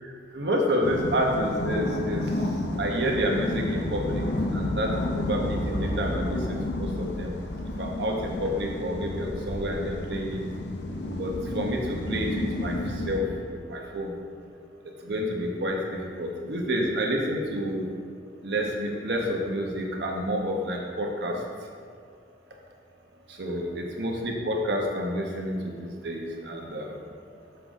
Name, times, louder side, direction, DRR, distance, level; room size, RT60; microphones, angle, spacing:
voice 1, 0.3-2.3 2.8-4.2 4.5-7.3 7.8-10.4 11.2-12.8 13.0-14.1 15.0-17.9 18.4-21.4 23.3-27.0, equal, 60° right, 0 dB, 1.0 m, -29 dB
sound 1, 0.8-13.2, left 1 dB, 70° left, 0.7 m, -31 dB
7.1 x 5.8 x 3.7 m, 2.1 s
head